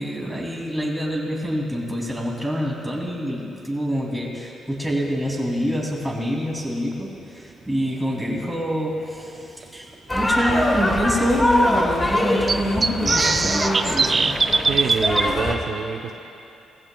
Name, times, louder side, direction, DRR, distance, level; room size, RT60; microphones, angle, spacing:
voice 1, 0.0-14.4, equal, 5° right, -3 dB, 2.9 m, -26 dB
sound 1, 6.9-7.0 9.0-9.1 9.6-9.7 9.9-10.0 12.5-15.2, right 4 dB, 35° right, 0.4 m, -21 dB
sound 2, 10.1-15.6, left 1 dB, 20° left, 1.5 m, -23 dB
voice 2, 14.5-16.1, right 5 dB, 65° right, 2 dB, 0.9 m, -27 dB
20.0 x 15.0 x 2.4 m, 2.7 s
cardioid pair, 90°, 0 cm